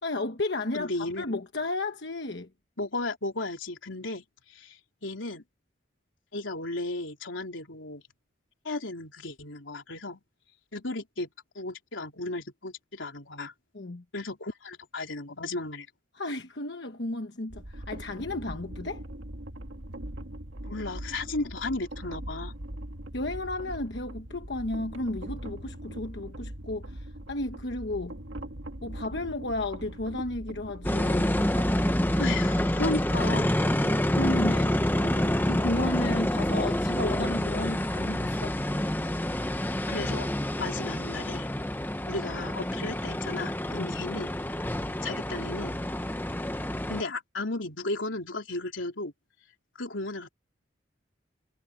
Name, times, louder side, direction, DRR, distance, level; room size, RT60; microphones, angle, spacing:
voice 1, 0.0-2.5 13.7-14.0 16.1-19.0 23.1-28.2 28.8-31.5 34.1-34.8 35.4-38.6 40.6-40.7 43.7-44.0, left 2 dB, 65° left, 1.2 m, -33 dB
voice 2, 0.7-1.2 2.8-5.4 6.3-8.0 8.6-10.2 10.7-11.3 11.6-13.5 14.1-15.9 20.6-22.5 32.2-33.5 39.9-41.5 42.1-44.3 45.0-45.8 46.9-49.1 49.8-50.3, left 2 dB, 90° left, 3.9 m, -34 dB
sound 1, 17.5-36.2, right 1 dB, 90° right, 1.9 m, -41 dB
sound 2, 30.8-47.0, left 1 dB, 10° left, 0.8 m, -28 dB
head